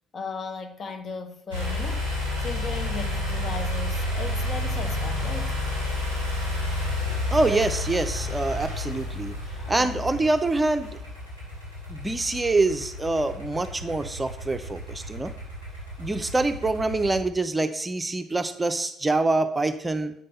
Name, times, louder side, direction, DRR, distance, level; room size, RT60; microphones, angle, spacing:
voice 1, 0.1-2.1 2.4-5.6 9.6-10.0, left 4 dB, 40° left, 1.0 m, -36 dB
sound 1, 1.5-17.2, left 1 dB, 90° left, 3.0 m, -31 dB
voice 2, 7.3-9.3 9.7-11.0 11.9-15.3 16.0-20.1, right 2 dB, 20° right, 0.6 m, -25 dB
7.9 x 5.4 x 5.5 m
figure-of-eight pair, 50°, 0 cm